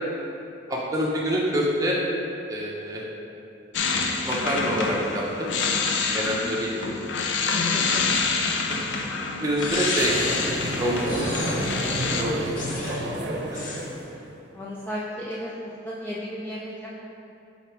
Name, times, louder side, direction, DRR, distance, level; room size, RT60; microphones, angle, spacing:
voice 1, 0.7-2.0 2.5-3.0 4.2-5.5 6.1-6.9 8.7-8.9 9.4-10.1 10.8-11.6 11.9-13.6, equal, 20° right, -4 dB, 0.9 m, -27 dB
sound 1, 3.7-12.2, left 4 dB, 75° left, 0.5 m, -27 dB
voice 2, 7.5-8.2 14.5-16.7 17.0-17.1, equal, 10° left, -7 dB, 0.4 m, -34 dB
sound 2, 9.6-10.4 11.1-11.8 12.6-13.1 13.5-13.9, left 3 dB, 45° left, 0.8 m, -35 dB
sound 3, 10.0-14.3, right 1 dB, 60° right, 0.8 m, -30 dB
8.1 x 3.8 x 3.4 m, 2.7 s
head